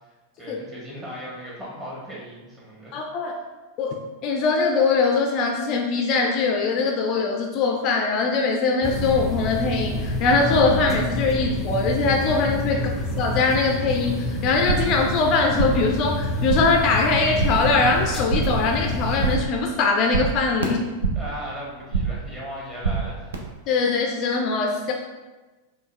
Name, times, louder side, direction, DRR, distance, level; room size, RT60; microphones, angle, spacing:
voice 1, 0.4-3.0 12.7-12.8 21.1-23.4, equal, 20° right, -5 dB, 1.4 m, -37 dB
voice 2, 2.9-3.3 3.8-3.9 4.2-12.8 13.2-20.9 23.7-24.9, left 4 dB, 40° left, 1 dB, 0.4 m, -22 dB
sound 1, 8.8-19.4, left 1 dB, 5° right, 0.7 m, -28 dB
sound 2, 14.5-15.0 15.3-15.9 16.2-16.8 17.1-17.7 18.0-18.7 19.0-19.6 19.8-21.4 21.6-22.3 22.5-23.3, right 5 dB, 70° right, 0.6 m, -27 dB
5.3 x 2.3 x 3.1 m, 1.2 s
figure-of-eight pair, 90°, 0 cm